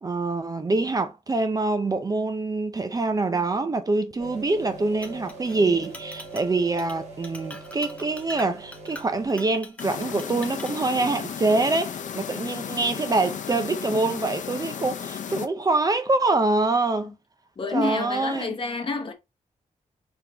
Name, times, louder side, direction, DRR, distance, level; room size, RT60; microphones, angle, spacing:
voice 1, 0.0-17.1 17.7-18.6, right 3 dB, 30° right, 0.5 m, -25 dB
sound 1, 4.2-9.3, right 3 dB, 60° right, 1.9 m, -42 dB
Chink clink, 5.0-5.6 5.8-6.5 6.8-7.0 7.2-10.8, left 1 dB, 10° left, 0.7 m, -44 dB
sound 2, 9.8-15.5, left 7 dB, 70° left, 0.6 m, -34 dB
voice 2, 17.6-19.1, left 3 dB, 40° left, 0.9 m, -28 dB
3.9 x 3.5 x 2.8 m
wide cardioid pair, 115°, 13 cm